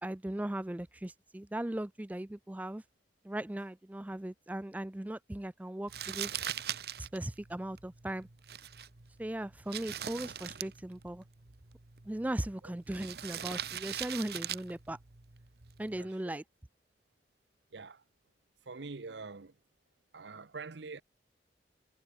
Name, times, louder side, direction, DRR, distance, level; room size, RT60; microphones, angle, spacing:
voice 1, 0.0-2.8 3.2-6.5 7.1-8.3 9.2-11.2 12.0-15.0 15.8-16.4, right 1 dB, 10° right, 0.3 m, -38 dB
Crumpling crinkling, 5.9-16.0, right 10 dB, 60° right, 1.2 m, -42 dB
voice 2, 16.0-16.4 17.7-18.0 18.7-19.5 20.1-21.0, right 4 dB, 80° right, 0.8 m, -45 dB
head